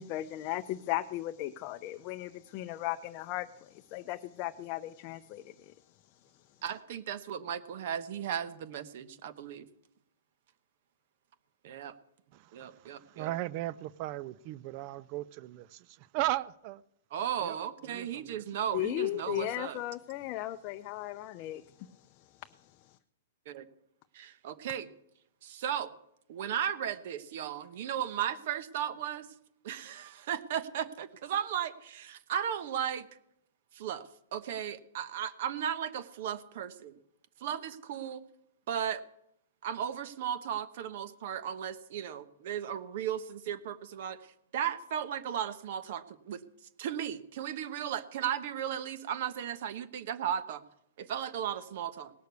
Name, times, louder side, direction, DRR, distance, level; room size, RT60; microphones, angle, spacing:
voice 1, 0.0-5.5 18.7-21.6, left 14 dB, 35° left, 0.5 m, -36 dB
voice 2, 6.6-9.7 11.6-11.9 12.5-13.3 17.1-19.8 23.5-23.7 24.1-24.9 25.4-25.9 26.3-29.3 29.6-33.1 33.7-36.9 37.4-38.2 38.7-39.0 39.6-46.4 46.8-50.6 51.0-52.1, right 9 dB, 55° right, 1.1 m, -36 dB
voice 3, 12.3-16.8 17.4-17.6 17.8-18.4, right 15 dB, 40° right, 0.5 m, -37 dB
18.0 x 6.6 x 8.2 m
hypercardioid pair, 145°, 0 cm